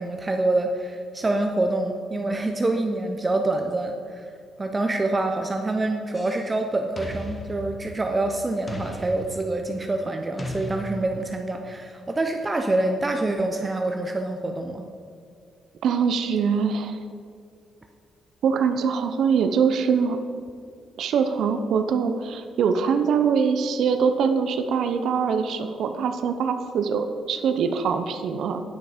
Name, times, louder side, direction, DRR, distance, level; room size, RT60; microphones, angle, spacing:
voice 1, 0.0-4.3 4.6-14.8, right 2 dB, 25° right, 4 dB, 0.7 m, -26 dB
sound 1, 6.1-6.6 7.0-8.2 8.7-9.8 10.4-11.4, left 1 dB, 25° left, 1.1 m, -37 dB
voice 2, 15.8-17.0 18.4-20.2 21.0-28.6, right 6 dB, 70° right, 7 dB, 0.6 m, -23 dB
9.4 x 5.9 x 5.0 m, 2.3 s
cardioid pair, 90°, 0 cm